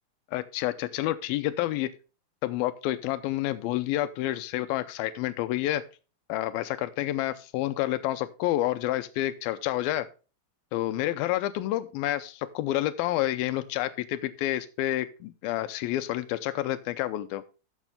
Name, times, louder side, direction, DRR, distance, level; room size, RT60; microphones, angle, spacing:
voice 1, 0.3-1.9 2.4-5.8 6.3-10.1 10.7-17.4, left 14 dB, 90° left, 13 dB, 2.6 m, -29 dB
13.5 x 6.6 x 3.5 m, 0.33 s
omnidirectional pair, 4.2 m